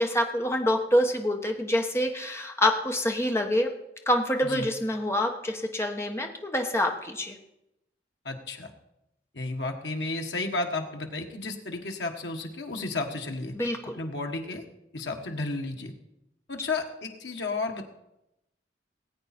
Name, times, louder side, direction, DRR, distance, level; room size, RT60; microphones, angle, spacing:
voice 1, 0.0-3.7 4.1-7.4 13.5-14.0, left 1 dB, 15° left, 3 dB, 1.1 m, -26 dB
voice 2, 8.2-8.7 9.3-13.5 13.9-14.6 14.9-15.9 16.5-17.8, left 3 dB, 80° left, 3 dB, 1.5 m, -32 dB
19.0 x 8.5 x 4.3 m, 0.87 s
head